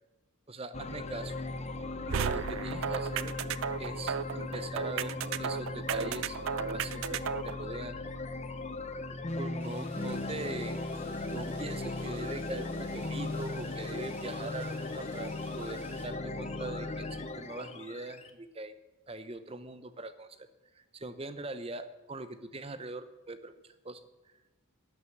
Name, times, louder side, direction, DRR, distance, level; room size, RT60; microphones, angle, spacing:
voice 1, 0.5-1.5 2.1-3.4 3.8-6.4 6.7-8.0 9.3-10.8 11.3-18.7 19.1-20.5 20.7-23.5 23.8-24.0, right 2 dB, 25° right, 12 dB, 0.7 m, -41 dB
sound 1, 0.7-18.3, left 2 dB, 30° left, 0.8 m, -38 dB
sound 2, 2.1-7.6, right 7 dB, 65° right, 0.4 m, -34 dB
Rain, 9.6-16.0, equal, 10° right, 3.7 m, -54 dB
11.5 x 9.8 x 7.2 m, 1.1 s
head